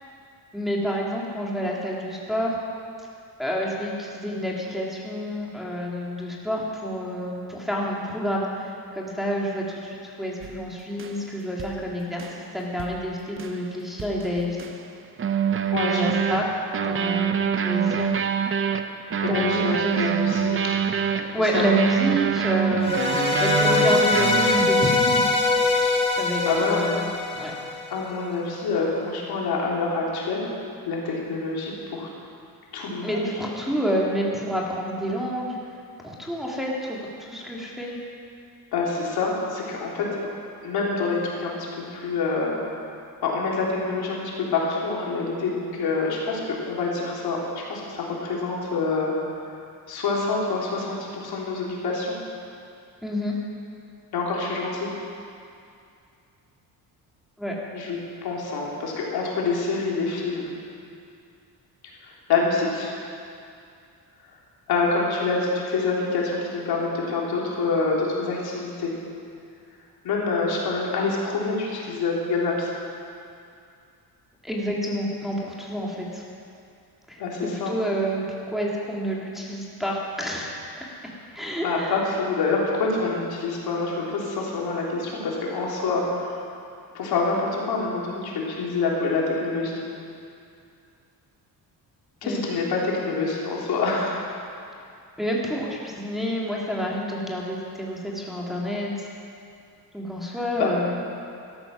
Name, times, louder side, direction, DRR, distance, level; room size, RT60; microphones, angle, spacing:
voice 1, 0.5-2.6 3.4-14.6 15.7-16.5 16.8-18.1 19.3-20.0 21.3-25.2 26.2-27.5 33.0-35.6 36.0-37.9 53.0-53.3 57.4-57.6 74.4-76.2 77.1-80.6 81.3-81.9 92.2-92.4 95.2-98.9 99.9-101.0, equal, ahead, -4 dB, 2.0 m, -28 dB
sound 1, 10.4-10.6 11.0-11.3 11.6-11.8 12.2-12.5 12.8-13.0 13.4-13.7 14.0-14.9 15.2-25.0, right 7 dB, 35° right, 0.7 m, -26 dB
voice 2, 15.7-16.0 19.2-20.8 21.4-21.7 26.4-26.8 27.9-30.4 30.9-32.1 32.7-33.3 38.7-40.0 40.6-41.5 41.9-42.5 43.2-44.2 44.5-49.1 49.9-52.1 54.1-54.9 57.7-60.5 62.3-62.9 64.7-68.9 70.0-72.7 77.2-77.7 81.6-86.0 86.9-89.8 92.2-94.2 100.6-100.7, left 4 dB, 70° left, -3 dB, 3.3 m, -26 dB
sound 2, 22.8-28.0, left 3 dB, 15° left, 1.7 m, -22 dB
13.5 x 13.0 x 6.0 m, 2.5 s
cardioid pair, 135°, 38 cm